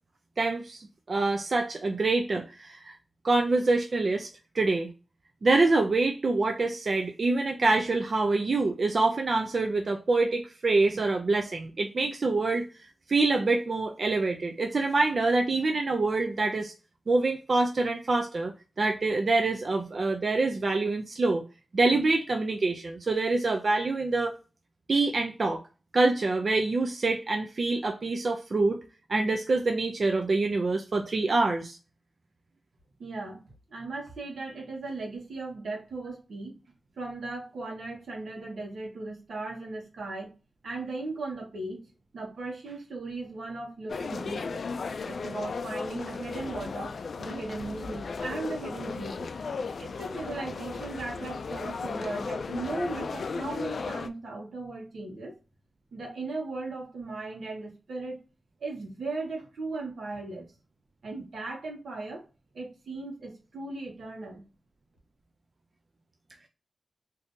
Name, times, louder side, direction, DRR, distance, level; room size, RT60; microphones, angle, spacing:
voice 1, 0.4-2.9 3.2-4.3 4.5-4.9 5.4-12.7 13.1-16.7 17.1-18.5 18.8-21.4 21.7-24.3 24.9-25.6 25.9-28.8 29.1-31.8, right 3 dB, 50° right, 3 dB, 0.4 m, -26 dB
voice 2, 33.0-33.4 33.7-36.5 37.0-40.3 40.6-41.8 42.1-44.6 45.0-49.3 49.8-55.3 55.9-58.2 58.6-60.5 61.0-62.2 62.5-64.4, right 3 dB, 85° right, 1 dB, 1.1 m, -37 dB
sound 1, 43.9-54.1, left 4 dB, 70° left, 0.3 m, -35 dB
2.7 x 2.5 x 3.5 m, 0.33 s
wide cardioid pair, 105°, 0 cm